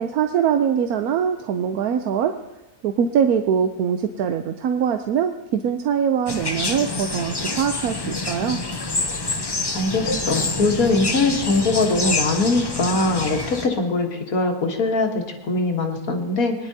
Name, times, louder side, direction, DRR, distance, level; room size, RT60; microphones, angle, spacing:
voice 1, 0.0-2.3 2.8-8.6, right 8 dB, 75° right, 7 dB, 1.1 m, -22 dB
sound 1, 6.3-13.7, left 2 dB, 25° left, 0.5 m, -27 dB
voice 2, 9.7-16.5, left 3 dB, 65° left, 3 dB, 1.8 m, -22 dB
21.5 x 10.5 x 2.8 m, 0.99 s
omnidirectional pair, 1.6 m